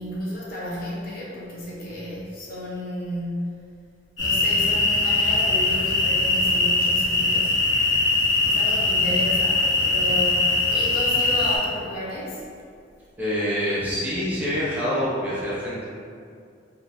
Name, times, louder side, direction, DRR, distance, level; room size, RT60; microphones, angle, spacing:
voice 1, 0.0-3.7 4.2-7.6 8.4-12.4, left 1 dB, 50° left, -6 dB, 0.6 m, -32 dB
sound 1, 4.2-11.6, left 2 dB, 80° left, 1.2 m, -21 dB
voice 2, 13.2-15.8, equal, 10° right, -9 dB, 0.9 m, -26 dB
3.7 x 2.5 x 2.7 m, 2.3 s
head